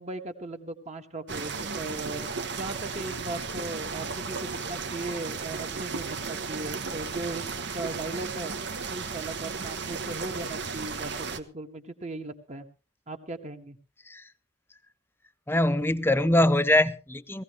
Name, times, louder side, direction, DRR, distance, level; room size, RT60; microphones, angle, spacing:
voice 1, 0.0-2.3 2.6-8.5 8.9-12.7 13.1-13.8, right 2 dB, 35° right, 5 dB, 1.5 m, -38 dB
sound 1, 1.3-11.4, right 4 dB, 60° right, 1.2 m, -34 dB
voice 2, 15.5-17.4, left 1 dB, 10° left, 13 dB, 0.6 m, -23 dB
18.5 x 15.5 x 3.1 m, 0.33 s
head